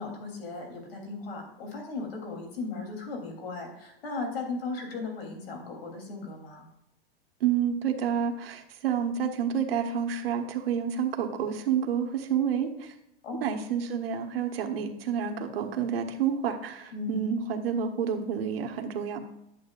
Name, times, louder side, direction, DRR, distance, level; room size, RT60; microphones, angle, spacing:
voice 1, 0.0-6.7 13.2-13.5 16.9-17.2, left 3 dB, 85° left, 2 dB, 3.1 m, -36 dB
voice 2, 7.4-12.9 13.4-19.2, right 8 dB, 85° right, 5 dB, 1.4 m, -29 dB
11.0 x 7.9 x 2.4 m, 0.85 s
supercardioid pair, 155°, 29 cm